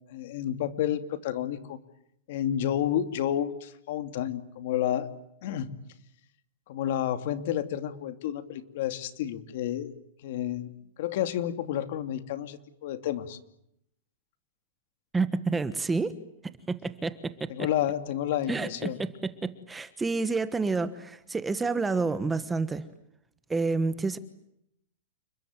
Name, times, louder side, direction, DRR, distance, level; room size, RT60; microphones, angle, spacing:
voice 1, 0.1-1.8 2.3-5.1 5.4-5.7 6.7-9.9 10.2-10.7 11.0-13.4 17.5-19.0, left 11 dB, 55° left, 2.7 m, -30 dB
voice 2, 15.1-16.2 16.4-17.5 18.5-18.7 19.4-22.8 23.5-24.2, right 4 dB, 10° right, 1.3 m, -29 dB
30.0 x 22.0 x 9.0 m
supercardioid pair, 160°, 0 cm